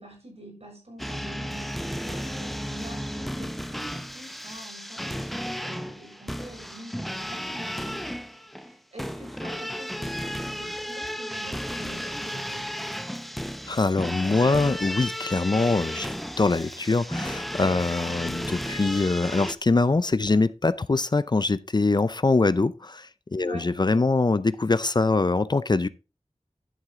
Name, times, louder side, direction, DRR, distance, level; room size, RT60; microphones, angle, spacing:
voice 1, 0.0-8.2 8.5-12.7 23.4-23.7, right 1 dB, 65° right, 6.3 m, -46 dB
sound 1, 1.0-19.5, equal, ahead, 0.7 m, -34 dB
voice 2, 13.7-25.9, left 3 dB, 40° left, 0.5 m, -23 dB
11.0 x 7.3 x 3.7 m
wide cardioid pair, 70°, 11 cm